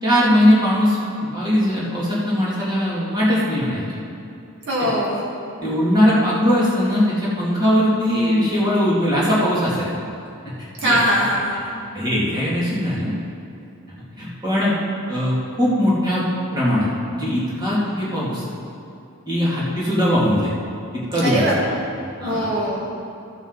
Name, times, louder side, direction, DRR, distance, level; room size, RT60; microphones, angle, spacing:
voice 1, 0.0-3.8 4.8-4.9 5.6-9.9 10.4-10.5 10.8-11.0 11.9-13.2 14.2-14.7 15.1-16.3 16.5-16.9 17.1-18.4 19.3-20.5 20.9-21.5 22.2-22.5, equal, 20° right, -8 dB, 2.6 m, -20 dB
voice 2, 4.6-5.2 10.8-11.5 21.2-21.5 22.2-22.9, equal, 55° right, -5 dB, 1.9 m, -21 dB
15.5 x 7.1 x 4.0 m, 2.7 s
head